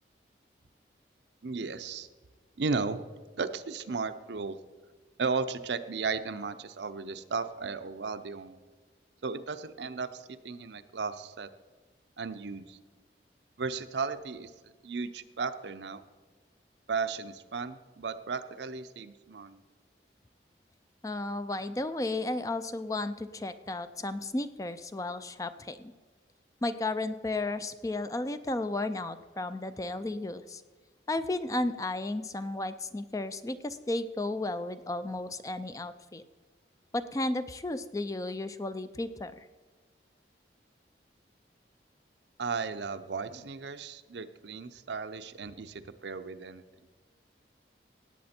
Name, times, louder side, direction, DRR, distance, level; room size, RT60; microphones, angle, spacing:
voice 1, 1.4-2.1 2.6-3.0 3.4-4.6 5.2-8.6 9.2-11.5 12.2-12.8 13.6-16.0 16.9-19.6 42.4-46.6, right 4 dB, 75° right, 10 dB, 0.6 m, -35 dB
voice 2, 21.0-25.9 26.6-30.6 31.1-36.2 36.9-39.5, left 2 dB, 20° left, 12 dB, 0.4 m, -33 dB
17.5 x 8.5 x 4.3 m, 1.4 s
head